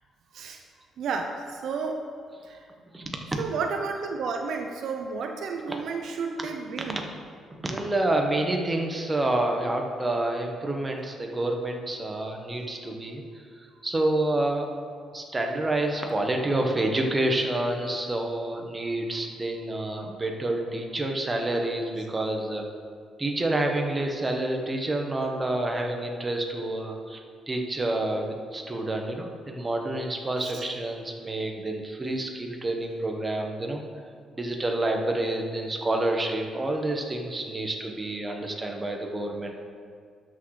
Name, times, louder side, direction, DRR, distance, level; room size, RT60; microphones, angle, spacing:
voice 1, 1.0-2.0 2.4-2.6 3.4-7.1 30.4-30.7, right 5 dB, 70° right, 4 dB, 0.5 m, -32 dB
voice 2, 2.9-3.4 5.7-5.8 6.4-6.5 7.6-14.7 15.1-22.7 23.2-27.2 27.5-33.8 34.3-39.6, right 1 dB, 20° right, 2 dB, 1.2 m, -28 dB
12.0 x 6.2 x 3.2 m, 2.1 s
cardioid pair, 90°, 0 cm